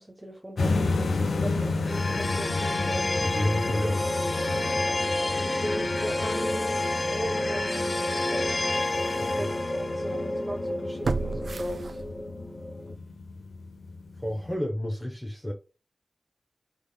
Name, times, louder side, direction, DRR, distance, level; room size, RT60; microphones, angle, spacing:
voice 1, 0.0-3.1 4.9-5.0 5.4-8.5 9.2-12.0, right 1 dB, 15° right, 0.7 m, -37 dB
sound 1, 0.6-14.5, left 3 dB, 90° left, 0.6 m, -33 dB
sound 2, 1.9-12.9, left 2 dB, 35° left, 0.5 m, -29 dB
voice 2, 3.2-4.1 9.2-9.5 14.2-15.5, equal, 15° left, 0.9 m, -30 dB
sound 3, 7.8-7.9 8.5-8.6 11.0-12.5 12.9-13.0, right 4 dB, 65° right, 0.3 m, -32 dB
3.6 x 3.4 x 2.2 m
cardioid pair, 55°, 0 cm